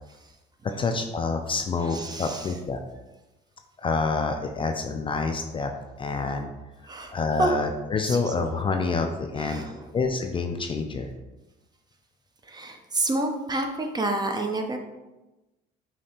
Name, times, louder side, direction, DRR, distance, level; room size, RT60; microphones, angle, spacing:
voice 1, 0.8-2.8 3.8-5.7 6.0-6.5 7.1-9.6 9.9-11.1, left 4 dB, 30° left, 5 dB, 0.4 m, -27 dB
voice 2, 1.8-2.5 6.9-7.5 8.0-8.3 9.4-9.9 12.4-14.8, right 2 dB, 20° right, 5 dB, 0.6 m, -29 dB
5.2 x 2.8 x 2.8 m, 1.1 s
supercardioid pair, 90°, 18 cm